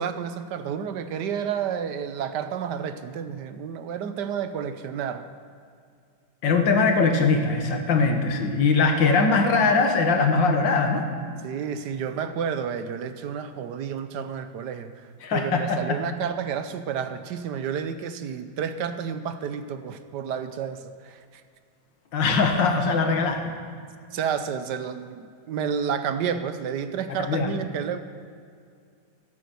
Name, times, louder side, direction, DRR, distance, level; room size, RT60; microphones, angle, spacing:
voice 1, 0.0-5.3 11.4-21.2 24.1-28.0, right 7 dB, 70° right, 10 dB, 1.3 m, -30 dB
voice 2, 6.4-11.0 15.2-16.0 22.1-23.5 27.2-27.5, left 4 dB, 85° left, 4 dB, 2.1 m, -21 dB
sound 1, 8.9-11.6, right 1 dB, 50° right, 4.1 m, -44 dB
13.5 x 10.5 x 6.9 m, 2.3 s
omnidirectional pair, 2.0 m